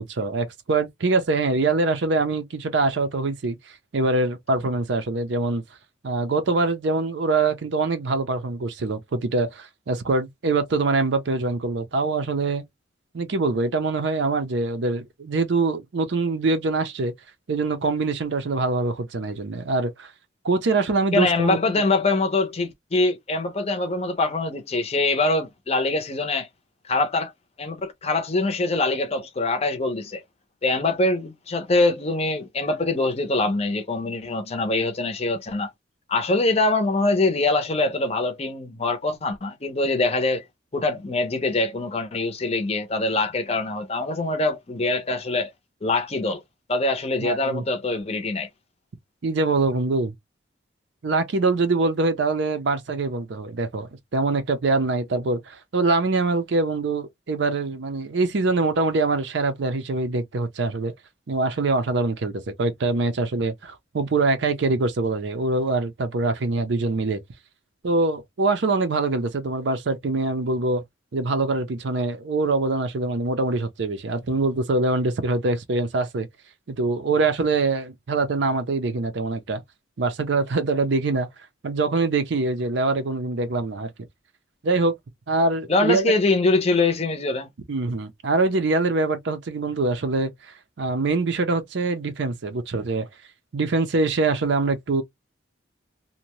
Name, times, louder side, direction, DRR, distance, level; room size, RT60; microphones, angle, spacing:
voice 1, 0.0-3.6 3.9-5.6 6.0-12.6 13.1-17.1 17.5-20.1 20.4-21.6 47.2-47.6 49.2-50.1 51.0-60.9 61.3-67.2 67.8-70.8 71.1-76.3 76.7-79.6 80.0-81.3 81.6-83.9 84.6-85.0 85.3-86.1 87.7-93.1 93.5-95.0, right 3 dB, 65° right, 0.5 m, -24 dB
voice 2, 21.1-26.5 26.8-27.3 27.6-30.2 30.6-35.7 36.1-40.4 40.7-45.5 45.8-46.4 46.7-48.5 85.7-87.5, left 2 dB, 30° left, 0.6 m, -23 dB
2.6 x 2.1 x 2.9 m
head